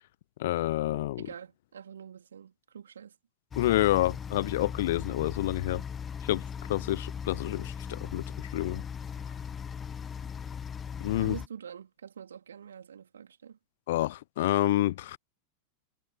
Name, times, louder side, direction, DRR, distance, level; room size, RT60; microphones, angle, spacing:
voice 1, 0.4-1.3 3.6-5.8 6.3-6.4 6.7-8.8 11.0-11.4 13.9-15.2, left 15 dB, 55° left, 0.4 m, -28 dB
voice 2, 1.2-3.2 11.2-13.6, right 8 dB, 65° right, 3.5 m, -45 dB
sound 1, 3.5-11.5, left 7 dB, 20° left, 1.3 m, -38 dB
figure-of-eight pair, 90°, 0 cm